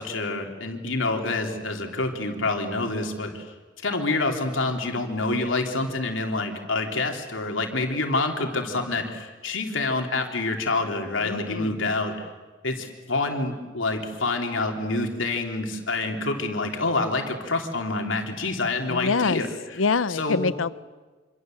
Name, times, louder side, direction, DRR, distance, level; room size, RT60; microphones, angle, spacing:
voice 1, 0.0-3.4 3.8-12.3 12.6-19.5 20.1-20.5, left 3 dB, 70° left, 3 dB, 3.3 m, -27 dB
voice 2, 11.2-11.7 18.9-19.4 19.8-20.7, left 4 dB, 90° left, 17 dB, 0.8 m, -25 dB
27.0 x 26.5 x 7.8 m, 1.3 s
head